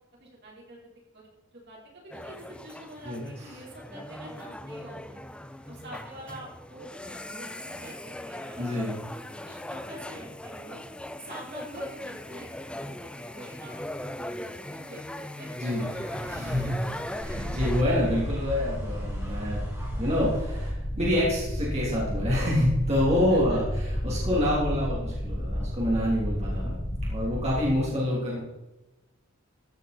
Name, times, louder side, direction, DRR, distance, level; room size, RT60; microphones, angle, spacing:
voice 1, 0.2-1.3 1.7-5.2 5.7-8.9 9.5-10.8 11.2-12.9 13.3-13.7 14.2-16.0 16.6-16.9 23.3-23.6, right 1 dB, 55° right, -3 dB, 4.6 m, -46 dB
sound 1, 2.1-17.8, left 1 dB, 5° left, 0.5 m, -39 dB
voice 2, 3.0-3.5 8.6-9.0 15.5-16.7 17.2-19.6 20.0-26.8 27.1-28.4, left 1 dB, 35° right, -6 dB, 3.6 m, -27 dB
sound 2, 15.7-20.7, equal, 15° right, 4.6 m, -44 dB
sound 3, 17.2-27.7, equal, 25° left, 1.8 m, -32 dB
15.0 x 8.4 x 4.5 m, 1.0 s
head